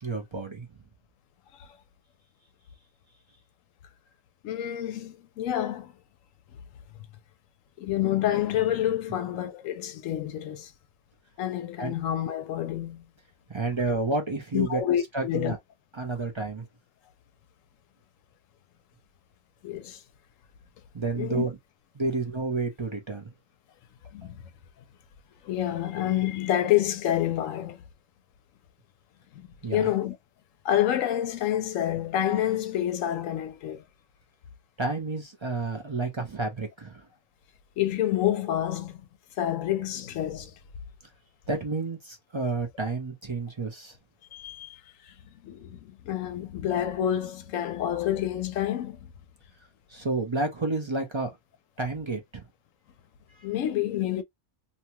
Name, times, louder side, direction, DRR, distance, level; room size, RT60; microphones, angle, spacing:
voice 1, 0.0-0.7 11.8-11.9 13.5-14.8 15.1-15.6 15.9-16.7 20.9-21.6 21.9-23.3 29.6-29.9 34.8-37.0 41.5-43.9 49.9-51.3 51.8-52.4 53.4-53.5, right 3 dB, 30° right, 0.5 m, -30 dB
voice 2, 4.4-5.9 7.8-10.7 11.4-13.0 14.5-15.5 19.6-20.0 21.1-21.5 24.1-24.4 25.4-27.8 29.3-30.2 30.6-33.8 37.8-39.0 39.4-40.5 44.3-44.8 45.1-45.2 45.4-49.0 53.4-54.2, left 11 dB, 90° left, 1.0 m, -28 dB
2.8 x 2.2 x 2.8 m
omnidirectional pair, 1.3 m